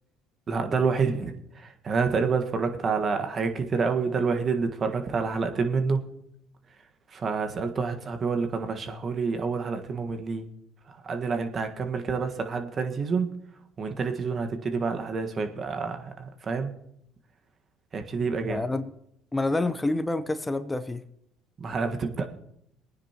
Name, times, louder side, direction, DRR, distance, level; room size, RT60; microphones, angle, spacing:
voice 1, 0.5-6.0 7.1-10.5 10.9-13.3 13.8-16.7 17.9-18.6 21.6-22.3, right 5 dB, 40° right, 6 dB, 1.5 m, -28 dB
voice 2, 18.4-18.9 19.3-21.0, left 2 dB, 15° left, 11 dB, 0.8 m, -28 dB
21.0 x 9.6 x 3.0 m, 0.75 s
hypercardioid pair, 70°, 0 cm